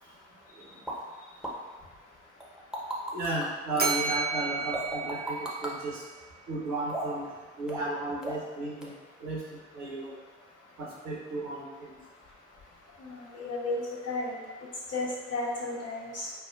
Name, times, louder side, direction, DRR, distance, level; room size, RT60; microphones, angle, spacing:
sound 1, 0.9-1.0 1.4-1.5 2.4-3.5 4.7-5.7 6.9-7.3 7.7-7.9 8.2-8.5 8.8-8.9, right 1 dB, ahead, 0.9 m, -35 dB
voice 1, 3.1-6.0 6.5-7.3 7.6-8.9 9.2-10.1 10.8-12.0, right 2 dB, 75° right, -6 dB, 1.0 m, -34 dB
Bell, 3.8-6.1, right 4 dB, 30° right, 0.7 m, -32 dB
voice 2, 13.0-14.4 14.9-16.3, left 2 dB, 50° left, -5 dB, 1.2 m, -33 dB
5.3 x 2.1 x 2.5 m, 1.3 s
hypercardioid pair, 40°, 32 cm